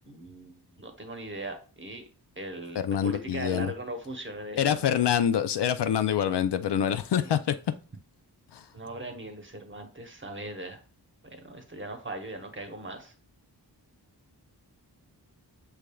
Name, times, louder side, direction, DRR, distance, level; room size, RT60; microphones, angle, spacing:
voice 1, 0.0-2.1 2.4-4.8 7.2-7.3 8.7-10.8 11.2-13.1, right 1 dB, 30° right, 0.9 m, -39 dB
voice 2, 2.8-3.7 4.6-7.6 8.5-8.7, left 9 dB, 80° left, 0.5 m, -26 dB
6.2 x 3.4 x 2.3 m
wide cardioid pair, 95°, 41 cm